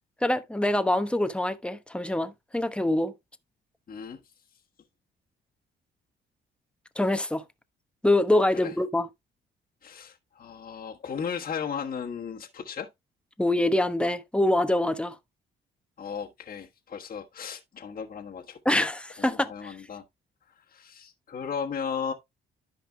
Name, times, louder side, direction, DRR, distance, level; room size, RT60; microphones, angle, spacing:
voice 1, 0.2-3.1 7.0-7.4 8.0-9.1 13.4-15.2 18.6-19.8, left 1 dB, 5° left, 1.0 m, -25 dB
voice 2, 3.9-4.2 8.6-8.7 9.8-12.9 16.0-18.9 19.2-20.0 20.7-22.1, left 6 dB, 45° left, 1.4 m, -35 dB
13.5 x 5.3 x 2.2 m
cardioid pair, 90°, 20 cm